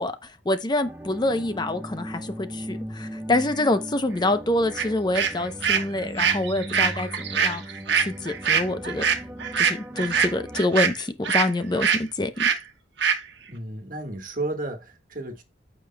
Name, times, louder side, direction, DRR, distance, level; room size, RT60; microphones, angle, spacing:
voice 1, 0.0-7.6 7.9-9.1 9.6-12.5, left 2 dB, 25° left, 0.6 m, -26 dB
sound 1, 0.8-10.6, equal, 10° right, 0.7 m, -38 dB
sound 2, 4.8-4.9 5.1-11.5 11.8-12.0 12.4-12.6 13.0-13.2, right 7 dB, 75° right, 1.2 m, -23 dB
voice 2, 13.5-15.4, right 2 dB, 50° right, 1.5 m, -33 dB
14.5 x 5.1 x 2.2 m
head